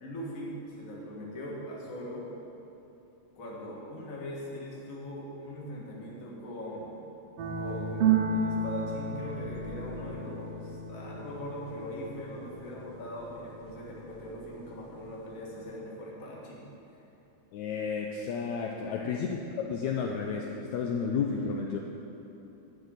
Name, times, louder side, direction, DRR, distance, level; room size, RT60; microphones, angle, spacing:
voice 1, 0.0-2.3 3.3-7.0 7.6-16.6 18.8-19.3, equal, 35° left, -4 dB, 1.6 m, -41 dB
sound 1, 7.4-15.6, right 4 dB, 70° right, 1.6 m, -33 dB
voice 2, 17.5-19.4 19.7-21.8, left 5 dB, 80° left, 1 dB, 1.8 m, -32 dB
11.5 x 4.8 x 7.8 m, 2.9 s
omnidirectional pair, 3.6 m